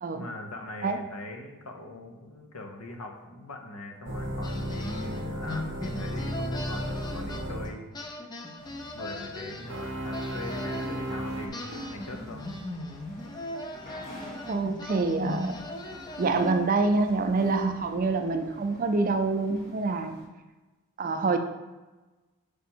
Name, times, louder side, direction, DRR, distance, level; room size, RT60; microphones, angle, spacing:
voice 1, 0.1-7.9 8.9-12.5, left 2 dB, 85° left, 4 dB, 0.9 m, -41 dB
sound 1, 4.0-7.7 9.6-11.5, equal, 55° right, 0.8 m, -34 dB
sound 2, 4.4-7.7 7.9-11.0 11.5-16.8, left 1 dB, 20° left, 0.5 m, -38 dB
sound 3, 8.6-20.3, equal, 35° left, 1.5 m, -47 dB
voice 2, 14.5-15.6 16.2-20.2 21.0-21.4, right 3 dB, 40° right, 6 dB, 0.4 m, -26 dB
5.0 x 4.6 x 4.3 m, 1.2 s
head